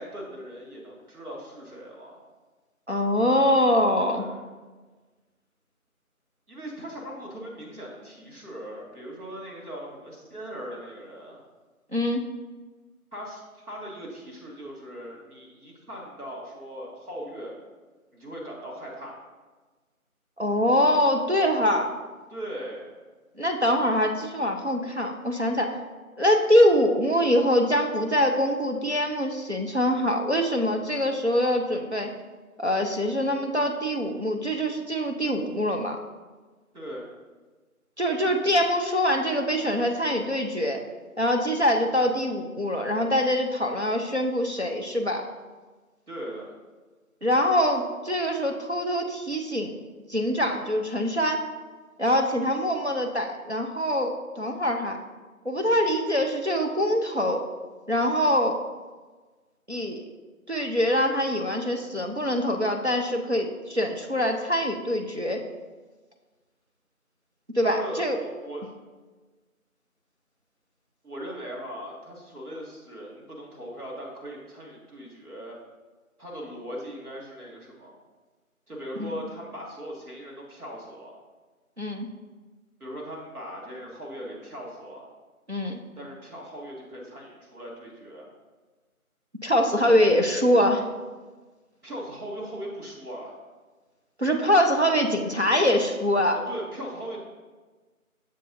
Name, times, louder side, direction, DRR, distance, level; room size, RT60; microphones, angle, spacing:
voice 1, 0.0-2.2 4.1-4.4 6.5-11.4 13.1-17.5 18.1-19.2 22.3-22.9 36.7-37.1 46.1-46.5 67.6-68.6 71.0-75.6 76.2-78.0 78.7-81.1 82.8-85.1 86.0-88.3 89.8-89.9 91.8-93.4 96.5-97.2, equal, 80° right, -3 dB, 2.0 m, -39 dB
voice 2, 2.9-4.3 11.9-12.2 20.4-21.9 23.4-25.8 26.2-32.1 32.6-36.0 38.0-40.8 41.2-45.2 47.2-49.8 50.1-51.4 52.0-55.0 55.5-57.4 57.9-58.6 59.7-60.0 60.5-65.4 67.5-68.2 79.0-79.2 81.8-82.1 85.5-85.8 89.4-90.8 94.2-96.4, equal, 50° right, 2 dB, 0.5 m, -24 dB
6.7 x 6.3 x 2.5 m, 1.3 s
figure-of-eight pair, 175°, 44 cm